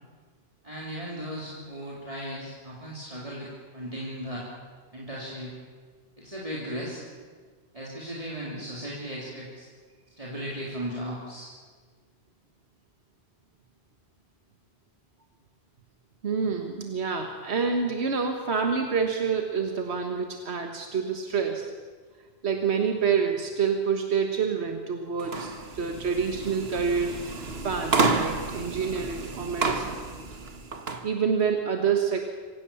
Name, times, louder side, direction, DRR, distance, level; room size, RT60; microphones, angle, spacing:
voice 1, 0.6-4.5 4.9-5.5 6.2-7.0 7.7-9.7 10.2-11.5, equal, 35° right, -5 dB, 3.7 m, -36 dB
voice 2, 16.2-21.7 22.4-27.3 27.6-30.0 31.0-32.3, right 6 dB, 85° right, 4 dB, 1.7 m, -27 dB
sound 1, 25.2-31.0, right 3 dB, 70° right, 1.8 m, -30 dB
25.5 x 17.0 x 7.1 m, 1.5 s
omnidirectional pair, 1.1 m